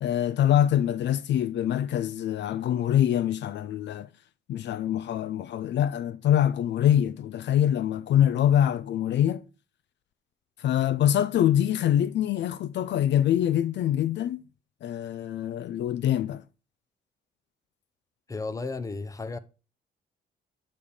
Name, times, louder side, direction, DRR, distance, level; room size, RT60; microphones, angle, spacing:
voice 1, 0.0-4.1 4.5-9.4 10.6-14.5 14.8-16.4, left 11 dB, 65° left, 0.4 m, -24 dB
voice 2, 18.3-19.4, left 3 dB, 15° left, 0.7 m, -33 dB
9.4 x 3.4 x 5.0 m
cardioid pair, 90°, 20 cm